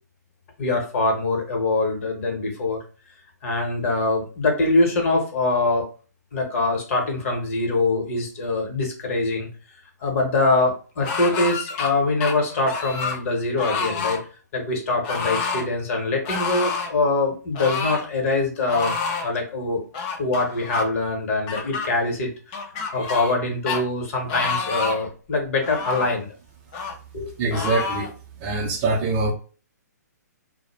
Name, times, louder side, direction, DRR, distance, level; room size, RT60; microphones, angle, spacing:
voice 1, 0.6-2.8 3.4-5.8 6.3-9.5 10.0-14.2 14.5-18.9 19.2-19.8 20.2-22.6 22.9-26.3 27.1-27.5, left 2 dB, 50° left, 1 dB, 0.9 m, -23 dB
sound 1, 11.0-11.9 12.2-13.2 13.6-14.2 15.0-15.6 16.2-16.9 17.5-18.1 18.7-19.3 19.9-20.8 21.5-21.9 22.5-23.4 23.7-23.8 24.3-25.1 25.6-26.1 26.7-26.9 27.5-28.1, left 4 dB, 30° left, 0.4 m, -28 dB
voice 2, 27.4-28.1 28.4-29.3, right 3 dB, 30° right, 1 dB, 0.5 m, -23 dB
2.1 x 2.1 x 3.1 m, 0.37 s
figure-of-eight pair, 130°, 10 cm